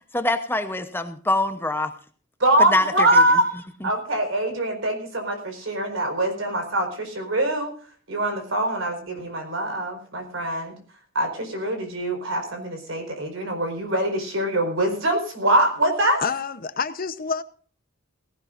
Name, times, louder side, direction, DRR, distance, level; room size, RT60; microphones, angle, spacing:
voice 1, 0.1-1.9 2.7-2.8 3.1-3.2 3.8-3.9, left 2 dB, 10° left, 8 dB, 0.9 m, -24 dB
voice 2, 2.4-3.5 3.8-7.7 8.1-10.8 11.1-16.2, right 1 dB, 70° right, 5 dB, 4.7 m, -23 dB
voice 3, 16.2-17.4, left 5 dB, 45° left, 13 dB, 0.9 m, -27 dB
18.0 x 16.5 x 2.6 m, 0.43 s
head